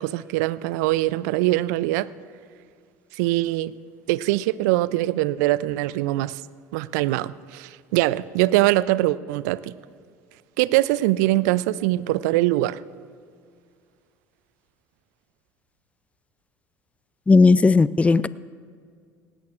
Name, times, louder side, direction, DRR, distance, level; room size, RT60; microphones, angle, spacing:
voice 1, 0.0-2.1 3.1-3.7 4.1-6.4 6.7-9.8 10.6-12.8, right 17 dB, 70° right, 0.4 m, -22 dB
voice 2, 17.3-18.3, left 3 dB, 15° left, 0.3 m, -15 dB
19.5 x 17.0 x 2.4 m
hypercardioid pair, 65°, 10 cm